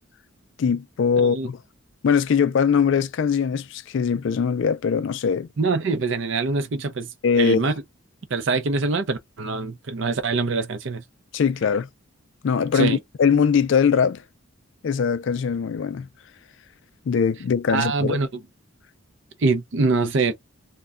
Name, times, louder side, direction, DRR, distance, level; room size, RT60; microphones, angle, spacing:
voice 1, 0.6-1.6 2.0-5.5 7.2-7.7 11.3-11.9 12.4-14.2 14.8-16.1 17.1-18.2, left 6 dB, 60° left, 0.3 m, -21 dB
voice 2, 1.2-1.5 5.6-7.7 8.3-11.0 12.7-13.0 17.7-18.3 19.4-20.3, right 3 dB, 55° right, 0.5 m, -24 dB
2.2 x 2.1 x 3.6 m
head